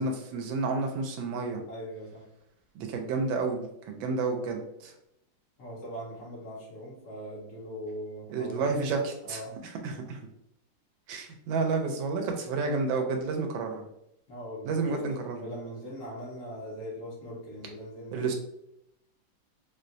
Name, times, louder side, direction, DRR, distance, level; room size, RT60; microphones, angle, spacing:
voice 1, 0.0-1.6 2.7-4.9 8.3-9.4 9.8-10.2 11.1-13.8 14.6-15.4 18.1-18.3, right 4 dB, 85° right, 3 dB, 1.3 m, -30 dB
voice 2, 1.7-2.3 5.6-9.6 14.3-18.3, equal, 45° left, -6 dB, 1.5 m, -41 dB
4.3 x 2.1 x 2.5 m, 0.79 s
omnidirectional pair, 2.0 m